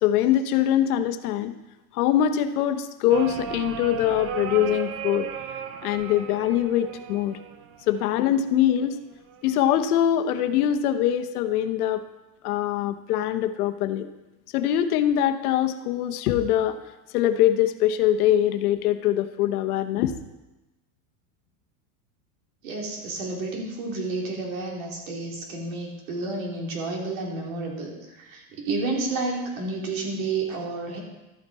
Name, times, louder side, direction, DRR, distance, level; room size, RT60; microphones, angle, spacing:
voice 1, 0.0-1.5 1.9-5.3 5.8-7.4 7.9-9.0 9.4-12.0 12.4-14.1 14.5-16.8 17.1-20.2, left 11 dB, 85° left, 10 dB, 0.9 m, -23 dB
sound 1, 3.1-8.1 9.3-9.8, right 8 dB, 30° right, 0.6 m, -35 dB
voice 2, 22.6-31.0, right 3 dB, 70° right, -1 dB, 3.2 m, -30 dB
12.5 x 8.9 x 4.2 m, 1.0 s
supercardioid pair, 155°, 43 cm